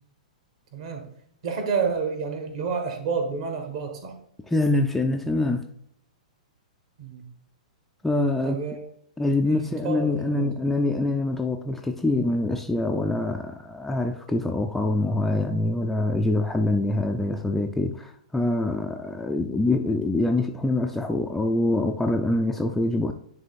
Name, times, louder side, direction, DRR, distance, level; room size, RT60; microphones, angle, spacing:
voice 1, 0.7-1.1 1.4-4.2 7.0-7.2 8.4-8.8 9.4-10.7, right 5 dB, 50° right, 1.8 m, -30 dB
voice 2, 4.5-5.7 8.0-8.6 9.2-23.1, left 2 dB, 5° left, 0.4 m, -25 dB
10.0 x 3.4 x 4.2 m
figure-of-eight pair, 105°, 4 cm